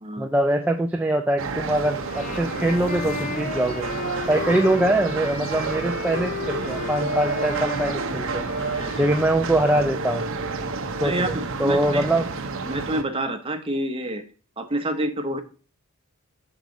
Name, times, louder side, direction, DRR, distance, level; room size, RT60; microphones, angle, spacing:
voice 1, 0.2-3.9 4.3-8.5 9.0-10.3 11.0-12.2, right 1 dB, 5° right, 3 dB, 0.3 m, -23 dB
sound 1, 1.4-13.0, right 3 dB, 60° right, 0.7 m, -30 dB
sound 2, 1.9-9.4, left 5 dB, 35° left, 0.6 m, -35 dB
voice 2, 8.8-9.2 11.0-12.1 12.7-14.2 14.6-15.4, right 1 dB, 25° right, 6 dB, 0.9 m, -28 dB
6.8 x 4.7 x 3.8 m, 0.37 s
head